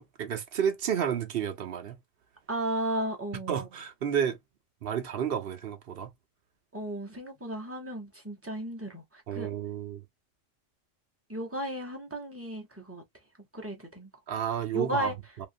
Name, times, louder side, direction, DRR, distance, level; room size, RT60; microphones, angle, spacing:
voice 1, 0.0-2.0 3.5-4.4 4.8-6.1 9.3-10.0 14.3-15.5, right 8 dB, 55° right, 0.8 m, -31 dB
voice 2, 2.5-3.6 6.7-9.5 11.3-13.0 13.5-14.1 14.7-15.1, right 1 dB, 15° right, 0.7 m, -34 dB
2.9 x 2.4 x 2.5 m
omnidirectional pair, 1.3 m